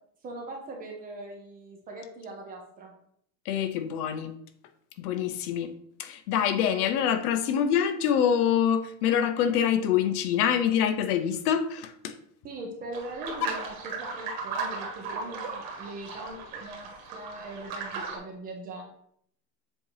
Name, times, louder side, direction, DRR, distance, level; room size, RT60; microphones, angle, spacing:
voice 1, 0.2-2.9 12.4-18.8, right 2 dB, 15° right, 0.7 m, -41 dB
voice 2, 3.5-4.4 5.0-12.1, left 8 dB, 65° left, 0.8 m, -25 dB
sound 1, 12.9-18.2, right 4 dB, 40° right, 1.5 m, -36 dB
7.5 x 2.8 x 4.8 m
supercardioid pair, 175°, 50 cm